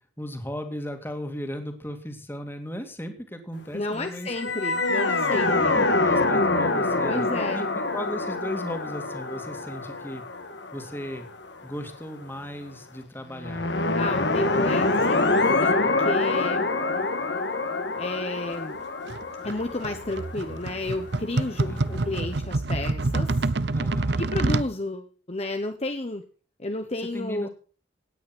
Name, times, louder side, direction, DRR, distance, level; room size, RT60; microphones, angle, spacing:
voice 1, 0.2-4.3 5.3-10.2 10.7-11.3 11.6-13.7 21.7-22.3 23.7-24.2 27.0-27.5, equal, 10° left, 6 dB, 2.4 m, -36 dB
voice 2, 3.7-5.8 7.0-7.6 13.9-16.7 18.0-18.8 19.4-23.4 24.2-26.2 26.6-27.5, left 2 dB, 35° left, 6 dB, 1.1 m, -31 dB
sound 1, 4.2-11.5 13.4-21.2, left 2 dB, 65° left, 1.8 m, -25 dB
sound 2, 19.1-24.7, right 2 dB, 60° right, 0.7 m, -27 dB
17.5 x 9.5 x 6.2 m, 0.40 s
head